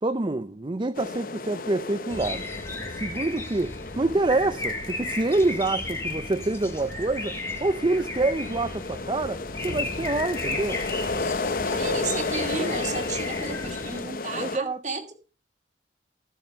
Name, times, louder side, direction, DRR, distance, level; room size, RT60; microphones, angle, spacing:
voice 1, 0.0-2.5 2.9-10.8 14.4-14.8, right 2 dB, 25° right, 0.5 m, -26 dB
sound 1, 0.9-14.6, left 3 dB, 50° left, 0.8 m, -33 dB
sound 2, 2.1-14.0, left 2 dB, 15° left, 2.0 m, -35 dB
voice 2, 11.6-15.1, right 3 dB, 40° right, 2.2 m, -33 dB
15.5 x 7.1 x 5.5 m
head